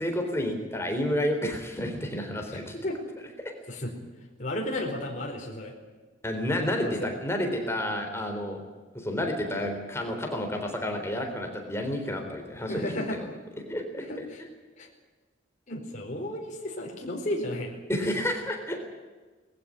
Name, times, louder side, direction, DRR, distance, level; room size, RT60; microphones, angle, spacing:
voice 1, 0.0-2.8 6.2-8.6 8.9-12.8 13.7-14.3 17.9-18.8, left 1 dB, 15° left, 3 dB, 3.7 m, -30 dB
voice 2, 2.5-3.0 3.7-3.9 4.4-5.7 6.8-7.1 12.7-13.2 14.0-14.4 14.8-14.9 15.7-17.8 18.0-18.2, left 1 dB, 40° left, -1 dB, 4.6 m, -33 dB
21.0 x 15.5 x 9.9 m, 1.3 s
head